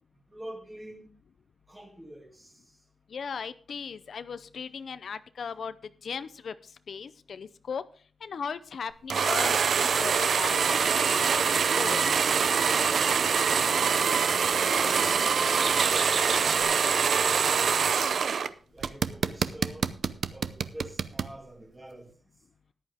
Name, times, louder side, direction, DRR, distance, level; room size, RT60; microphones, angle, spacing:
voice 1, 0.3-1.2 1.7-2.6 12.3-14.0 14.7-18.3 18.7-19.9 20.3-22.1, right 1 dB, 15° right, 2.2 m, -45 dB
voice 2, 3.1-5.7 6.0-7.8 8.2-11.4 11.7-12.0, left 6 dB, 70° left, 0.5 m, -37 dB
sound 1, 9.1-18.5 18.8-21.3, right 6 dB, 75° right, 0.5 m, -25 dB
sound 2, 11.2-16.6, right 4 dB, 55° right, 1.2 m, -39 dB
14.0 x 10.5 x 3.5 m
wide cardioid pair, 115°, 0 cm